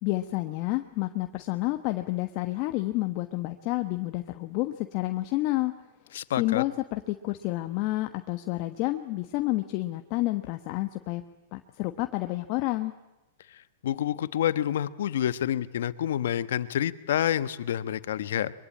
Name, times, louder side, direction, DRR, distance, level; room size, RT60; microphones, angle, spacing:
voice 1, 0.0-5.7 6.4-11.2 11.5-12.9, left 18 dB, 50° left, 7 dB, 1.2 m, -29 dB
voice 2, 6.1-6.6 13.5-18.5, left 10 dB, 75° left, 15 dB, 1.2 m, -28 dB
23.0 x 23.0 x 8.7 m, 1.0 s
hypercardioid pair, 125°, 0 cm